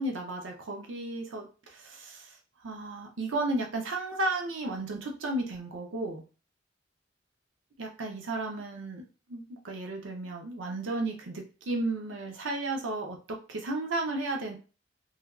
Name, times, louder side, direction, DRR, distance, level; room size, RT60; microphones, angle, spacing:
voice 1, 0.0-2.4 2.6-6.2 7.8-9.0 9.3-14.6, right 2 dB, 90° right, 2 dB, 0.6 m, -33 dB
3.2 x 2.3 x 2.2 m, 0.34 s
head